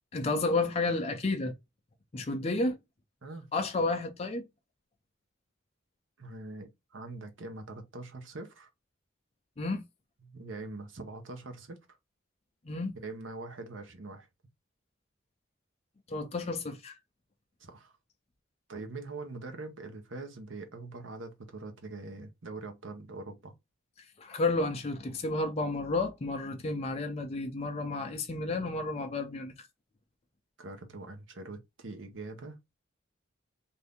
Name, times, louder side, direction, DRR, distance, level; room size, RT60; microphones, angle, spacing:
voice 1, 0.1-1.5 2.1-2.8 3.5-4.4 9.6-9.8 12.6-12.9 16.1-17.0 24.2-29.5, left 2 dB, 35° left, 0.5 m, -31 dB
voice 2, 6.2-8.7 10.2-11.8 12.9-14.3 17.6-17.9 18.7-23.5 30.6-32.6, right 2 dB, 80° right, 0.9 m, -43 dB
2.7 x 2.6 x 3.4 m
head